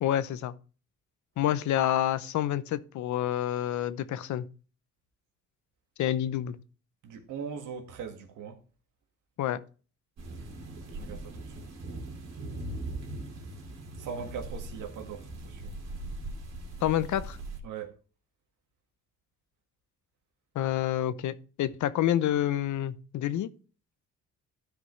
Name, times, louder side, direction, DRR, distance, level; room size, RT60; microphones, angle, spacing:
voice 1, 0.0-0.5 1.4-4.5 6.0-6.6 9.4-9.6 16.8-17.4 20.5-23.5, left 12 dB, 75° left, 0.7 m, -28 dB
voice 2, 7.0-8.6 10.9-11.6 14.0-15.7 17.6-17.9, right 6 dB, 85° right, 1.6 m, -40 dB
sound 1, 10.2-17.6, right 2 dB, 60° right, 2.3 m, -40 dB
13.0 x 5.1 x 3.1 m
cardioid pair, 90°, 30 cm